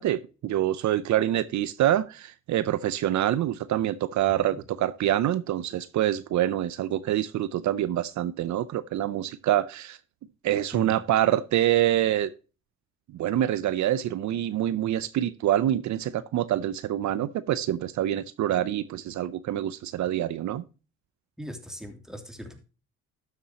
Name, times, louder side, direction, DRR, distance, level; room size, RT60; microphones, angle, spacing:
voice 1, 0.0-10.0 10.4-12.3 13.1-20.6, right 12 dB, 70° right, 0.6 m, -26 dB
voice 2, 4.3-4.6 10.7-11.0 17.1-17.3 21.4-22.6, equal, ahead, 2.7 m, -40 dB
12.5 x 7.2 x 2.8 m
cardioid pair, 90°, 30 cm